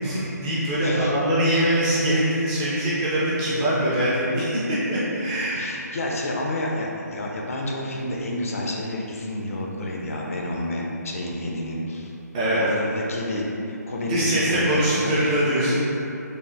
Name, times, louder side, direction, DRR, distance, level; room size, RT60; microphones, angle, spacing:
voice 1, 0.0-5.7 12.3-12.6 14.1-15.8, right 1 dB, 15° right, -9 dB, 0.4 m, -23 dB
voice 2, 0.8-1.1 5.5-12.1 12.5-15.2 15.6-15.7, left 1 dB, 50° left, -2 dB, 0.4 m, -29 dB
3.3 x 2.0 x 2.5 m, 2.8 s
figure-of-eight pair, 155°, 10 cm